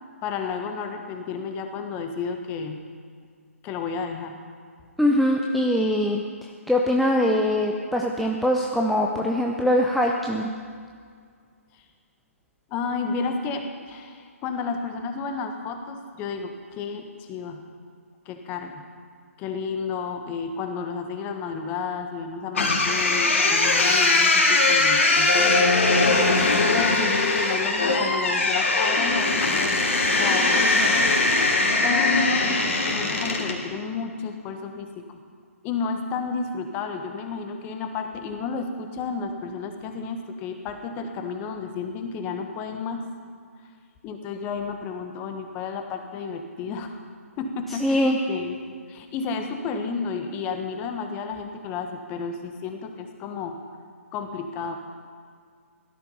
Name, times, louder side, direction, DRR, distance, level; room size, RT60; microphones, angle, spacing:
voice 1, 0.2-2.8 3.6-4.4 11.7-11.8 12.7-17.6 18.2-18.8 19.4-25.7 26.7-29.8 30.2-31.1 31.8-32.4 32.9-35.0 35.6-43.1 44.0-47.0 47.4-48.6 48.9-53.6 54.1-54.8, left 5 dB, 20° left, 5 dB, 1.5 m, -31 dB
voice 2, 5.0-10.5 47.8-48.2, left 1 dB, ahead, -1 dB, 0.7 m, -22 dB
sound 1, 22.5-33.6, left 3 dB, 60° left, 3.1 m, -21 dB
17.0 x 13.0 x 5.6 m, 2.1 s
figure-of-eight pair, 135°, 8 cm